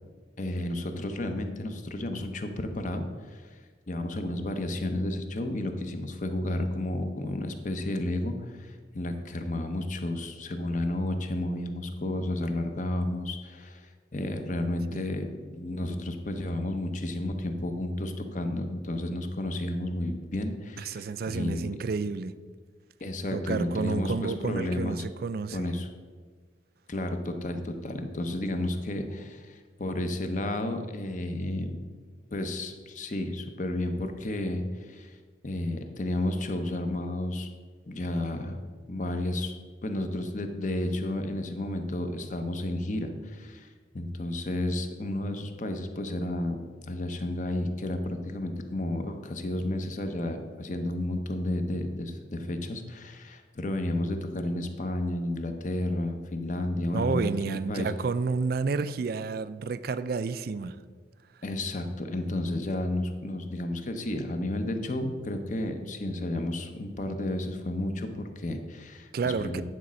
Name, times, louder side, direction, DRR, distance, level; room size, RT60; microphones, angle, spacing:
voice 1, 0.4-3.6 3.9-21.8 23.0-25.0 25.5-25.9 26.9-31.8 32.3-35.2 35.4-37.5 37.9-38.6 38.9-39.5 39.8-46.6 46.9-58.0 61.4-69.6, left 1 dB, 40° left, 0.8 m, -32 dB
voice 2, 20.8-22.4 23.3-25.7 56.9-60.8 69.1-69.6, right 4 dB, 50° right, 0.3 m, -30 dB
9.7 x 4.2 x 6.2 m
head